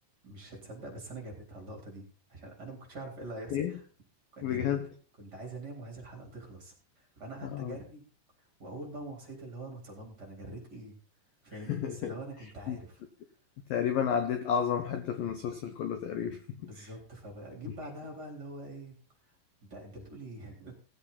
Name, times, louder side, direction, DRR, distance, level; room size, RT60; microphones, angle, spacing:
voice 1, 0.2-3.8 4.3-4.8 5.2-8.0 8.4-11.0 11.4-13.0 16.6-18.9 19.3-19.4 19.7-20.8, right 2 dB, 20° right, 0 dB, 3.8 m, -44 dB
voice 2, 4.4-4.9 7.4-7.8 11.7-12.1 12.7-12.8 13.7-16.9, left 8 dB, 75° left, 7 dB, 2.1 m, -31 dB
18.0 x 8.1 x 4.1 m, 0.37 s
omnidirectional pair, 5.6 m